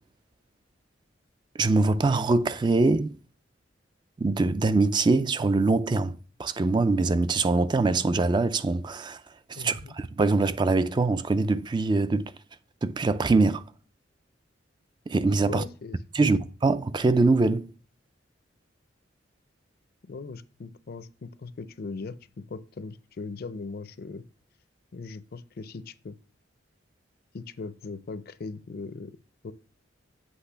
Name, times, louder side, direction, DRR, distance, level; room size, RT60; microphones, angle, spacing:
voice 1, 1.6-3.2 4.2-9.2 9.5-12.3 12.8-13.6 15.1-15.6 16.1-17.7, right 3 dB, 25° right, 0.3 m, -23 dB
voice 2, 9.5-9.9 15.5-16.4 20.0-22.2 22.5-24.3 24.9-26.1 27.3-29.1 29.4-29.5, left 4 dB, 55° left, 0.5 m, -39 dB
8.1 x 3.2 x 5.5 m
head